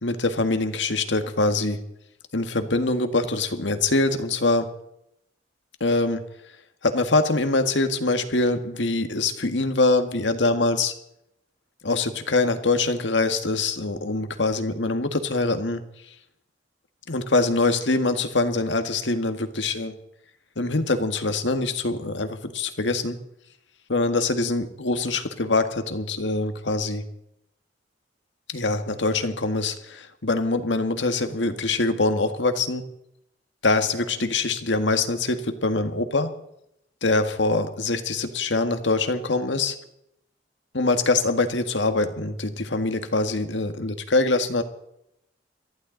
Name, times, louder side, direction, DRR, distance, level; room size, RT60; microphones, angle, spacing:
voice 1, 0.0-1.8 2.3-4.7 5.8-6.2 6.8-10.9 11.8-15.8 17.1-19.9 20.6-23.2 23.9-27.0 28.5-32.8 33.6-36.3 37.0-39.8 40.7-44.6, left 3 dB, 85° left, 8 dB, 1.7 m, -24 dB
23.0 x 15.0 x 4.0 m, 0.78 s
head